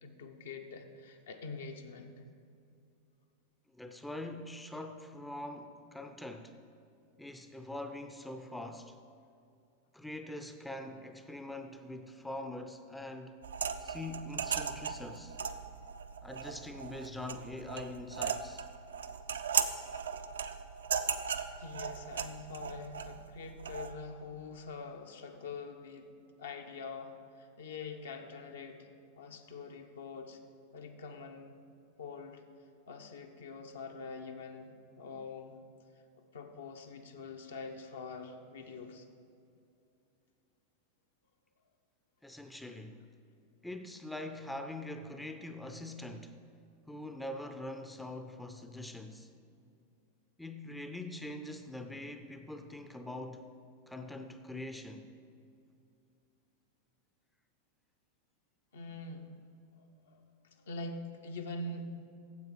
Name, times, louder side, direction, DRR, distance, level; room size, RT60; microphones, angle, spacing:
voice 1, 0.0-2.1 21.5-26.1 26.4-28.9 29.2-30.4 30.7-31.6 32.0-32.4 32.9-35.6 36.3-39.1 58.7-59.3 59.8-60.2 60.5-61.9, left 3 dB, 65° left, 4 dB, 0.8 m, -44 dB
voice 2, 3.7-6.6 7.2-9.0 9.9-13.4 13.8-15.4 16.2-18.7 42.2-43.0 43.6-46.4 46.9-49.4 50.4-53.5 53.9-55.1, left 1 dB, 5° left, 7 dB, 0.5 m, -43 dB
sound 1, 13.4-23.9, right 6 dB, 65° right, 0.5 m, -37 dB
9.4 x 7.6 x 5.3 m, 2.5 s
figure-of-eight pair, 90°, 0 cm